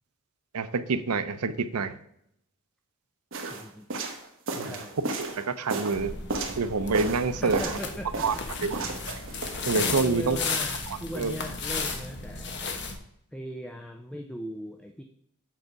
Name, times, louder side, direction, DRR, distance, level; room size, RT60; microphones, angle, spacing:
voice 1, 0.5-1.9 4.6-4.7 5.2-6.1 6.6-7.6 8.2-8.3 8.6-8.9 9.7-10.4 11.2-11.3, right 4 dB, 90° right, 10 dB, 0.6 m, -27 dB
sound 1, 3.3-6.6 6.9-7.9 8.1-9.6, right 3 dB, 60° right, 1.3 m, -33 dB
voice 2, 3.5-3.9 4.6-5.0 7.3-8.4 9.9-12.6 13.3-15.0, equal, 5° left, 4 dB, 0.5 m, -39 dB
sound 2, 5.9-13.0, left 4 dB, 50° left, 1.1 m, -34 dB
7.7 x 4.7 x 5.2 m, 0.73 s
head